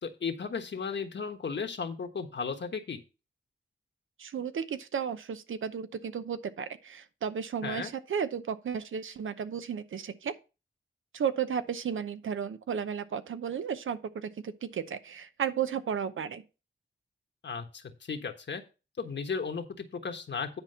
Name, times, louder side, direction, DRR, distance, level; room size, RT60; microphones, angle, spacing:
voice 1, 0.0-3.0 7.6-7.9 17.4-18.6 19.0-20.6, left 5 dB, 60° left, 1.3 m, -35 dB
voice 2, 4.2-10.3 11.1-16.4, right 7 dB, 80° right, 0.8 m, -34 dB
9.7 x 4.4 x 5.6 m
cardioid pair, 80°, 20 cm